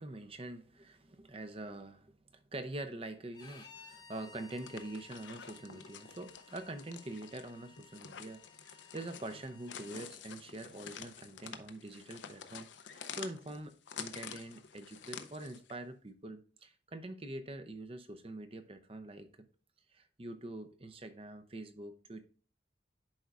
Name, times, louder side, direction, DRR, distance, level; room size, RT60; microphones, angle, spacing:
voice 1, 0.0-19.3 19.9-22.3, right 2 dB, 30° right, 0.6 m, -45 dB
Bowed string instrument, 3.3-10.1, left 5 dB, 20° left, 0.9 m, -58 dB
sound 1, 4.4-15.7, left 7 dB, 80° left, 0.6 m, -49 dB
10.5 x 4.6 x 2.4 m
head